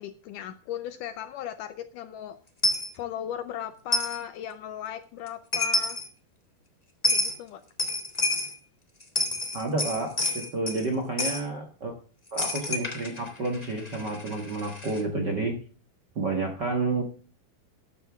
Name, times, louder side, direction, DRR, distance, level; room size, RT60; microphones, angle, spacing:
voice 1, 0.0-2.4 2.9-6.0 7.1-7.6, left 11 dB, 80° left, 11 dB, 1.9 m, -37 dB
Coin (dropping), 2.6-2.9 3.9-4.2 5.3-5.4 5.5-6.1 7.0-7.4 7.8-8.5 9.0-10.8 11.2-11.4 12.4-15.0, left 2 dB, 25° left, 0.7 m, -28 dB
voice 2, 9.5-11.9 12.3-15.6 16.1-17.0, right 3 dB, 50° right, 3 dB, 1.3 m, -30 dB
13.5 x 11.0 x 3.5 m, 0.37 s
omnidirectional pair, 4.3 m